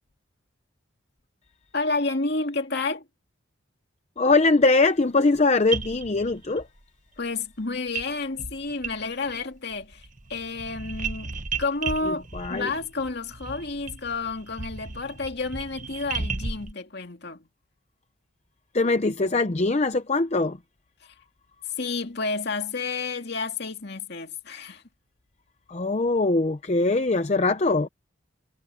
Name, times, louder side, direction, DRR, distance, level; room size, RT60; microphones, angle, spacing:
voice 1, 1.7-3.1 7.2-17.5 21.0-21.1 21.8-24.8, left 3 dB, 55° left, 2.5 m, -30 dB
voice 2, 4.2-6.7 12.1-12.7 18.7-20.6 25.7-27.9, left 3 dB, 35° left, 0.7 m, -22 dB
sound 1, 5.4-5.5 5.7-6.6 7.9-8.1 8.4-9.4 9.7-16.7, right 4 dB, 40° right, 1.4 m, -35 dB
head